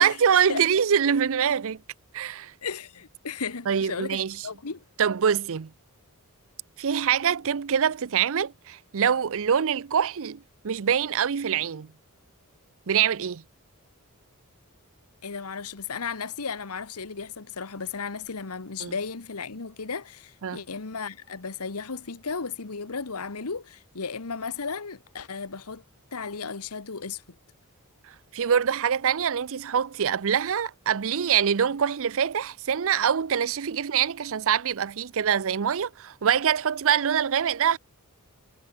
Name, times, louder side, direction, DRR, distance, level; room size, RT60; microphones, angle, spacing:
voice 1, 0.0-1.8 2.1-2.5 3.7-4.4 5.0-5.7 6.8-11.9 12.9-13.4 18.8-18.9 20.4-20.6 28.3-37.8, right 8 dB, 65° right, 0.6 m, -24 dB
voice 2, 2.6-4.8 15.2-25.8 26.1-27.2, left 5 dB, 80° left, 1.3 m, -35 dB
head